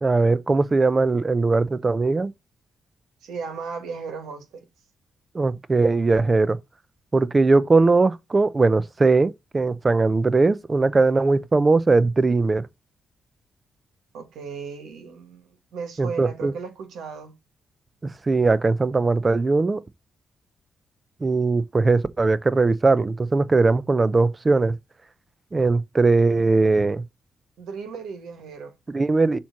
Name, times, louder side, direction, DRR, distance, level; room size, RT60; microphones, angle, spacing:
voice 1, 0.0-2.3 5.3-6.6 7.1-12.7 16.0-16.5 18.3-19.8 21.2-24.7 25.5-27.0 28.9-29.4, right 3 dB, 35° right, 0.6 m, -20 dB
voice 2, 3.2-4.6 14.1-17.3 27.6-28.8, right 5 dB, 80° right, 1.6 m, -36 dB
7.1 x 3.1 x 5.8 m
supercardioid pair, 55°, 0 cm